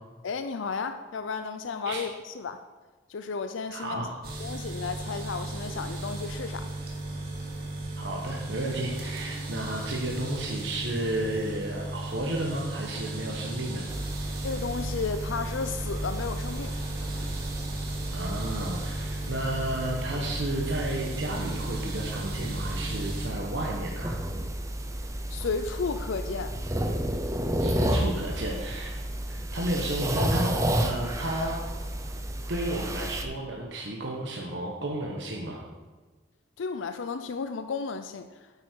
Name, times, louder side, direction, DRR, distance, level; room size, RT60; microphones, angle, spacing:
voice 1, 0.2-2.6 3.1-4.1 4.4-6.7 14.4-16.7 25.3-26.6 36.6-38.3, left 5 dB, 85° left, 9 dB, 0.5 m, -33 dB
voice 2, 3.7-4.1 8.0-13.8 18.1-24.2 27.6-29.0 29.3-31.6 32.5-35.6, right 1 dB, 70° right, -1 dB, 1.3 m, -32 dB
sound 1, 4.2-23.3, right 2 dB, 55° right, 2.0 m, -36 dB
sound 2, 13.9-33.2, right 1 dB, 15° right, 0.7 m, -32 dB
9.4 x 8.7 x 4.6 m, 1.3 s
head